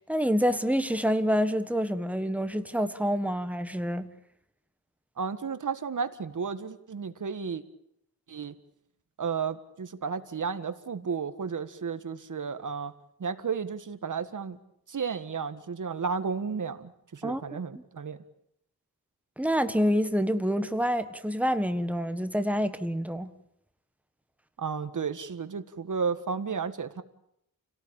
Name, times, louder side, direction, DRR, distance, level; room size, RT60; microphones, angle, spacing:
voice 1, 0.1-4.1 17.2-17.8 19.4-23.3, equal, 5° right, 1.5 m, -27 dB
voice 2, 5.2-7.6 8.3-8.5 9.2-12.9 13.2-14.6 14.9-18.2 24.6-27.0, right 5 dB, 55° right, 1.7 m, -33 dB
29.5 x 18.0 x 8.8 m
wide cardioid pair, 135°, 36 cm